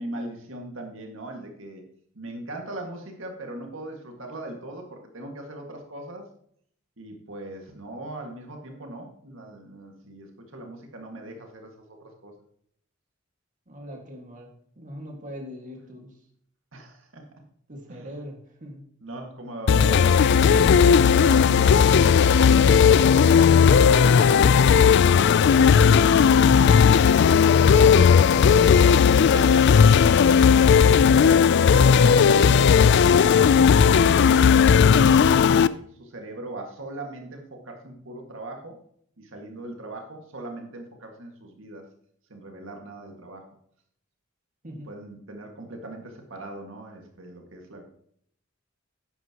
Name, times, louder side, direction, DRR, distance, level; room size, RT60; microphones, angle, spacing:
voice 1, 0.0-1.8 2.1-6.3 7.0-11.7 12.0-12.3 16.7-17.2 17.9-18.1 19.0-23.0 25.2-27.6 28.7-32.0 32.6-33.6 33.9-38.8 39.2-41.9 42.3-43.5 44.8-47.8, right 2 dB, 75° right, 2 dB, 1.9 m, -40 dB
voice 2, 13.7-16.1 17.7-18.8 44.6-44.9, equal, 40° right, 1 dB, 1.8 m, -41 dB
sound 1, 19.7-35.7, left 6 dB, 60° left, 0.4 m, -16 dB
11.0 x 9.5 x 2.9 m, 0.64 s
head